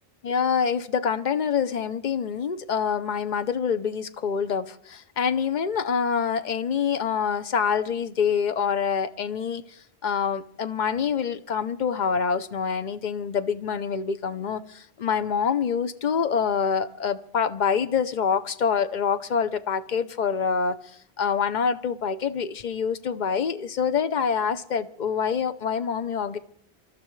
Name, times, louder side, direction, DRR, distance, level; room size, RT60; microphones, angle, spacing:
voice 1, 0.2-20.8 21.2-26.4, left 6 dB, 50° left, 0.8 m, -26 dB
26.0 x 13.0 x 3.2 m
omnidirectional pair, 1.1 m